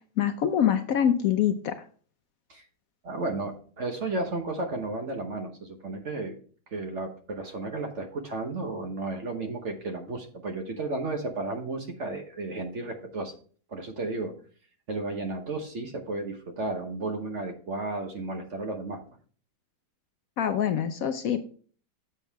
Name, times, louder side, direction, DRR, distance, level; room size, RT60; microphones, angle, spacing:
voice 1, 0.2-1.8 20.4-21.4, left 9 dB, 65° left, 8 dB, 0.9 m, -25 dB
voice 2, 3.0-6.3 6.7-13.3 13.7-14.3 14.9-19.0, right 2 dB, 50° right, 5 dB, 1.2 m, -33 dB
7.2 x 7.2 x 3.4 m, 0.43 s
omnidirectional pair, 1.8 m